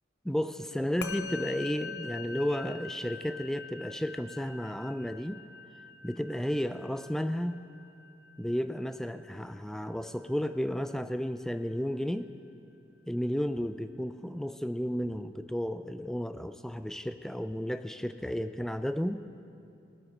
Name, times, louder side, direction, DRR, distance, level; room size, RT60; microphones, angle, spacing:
voice 1, 0.2-5.4 6.0-7.6 8.4-12.3 13.1-19.2, equal, 5° left, 10 dB, 0.3 m, -33 dB
Musical instrument, 1.0-10.5, left 5 dB, 60° left, 0.6 m, -45 dB
19.5 x 8.0 x 5.2 m, 2.6 s
head